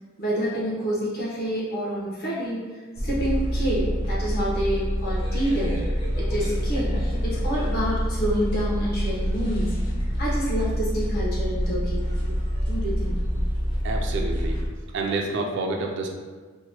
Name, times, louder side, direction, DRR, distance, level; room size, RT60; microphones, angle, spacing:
voice 1, 0.2-2.6 3.0-5.8 6.2-9.7 10.2-12.4 12.7-13.2, right 1 dB, 45° left, -7 dB, 0.8 m, -28 dB
sound 1, 3.0-14.7, equal, 25° left, 0.5 m, -26 dB
voice 2, 13.8-14.6 14.9-16.1, right 3 dB, 55° right, 1 dB, 0.3 m, -28 dB
2.9 x 2.1 x 2.8 m, 1.4 s
head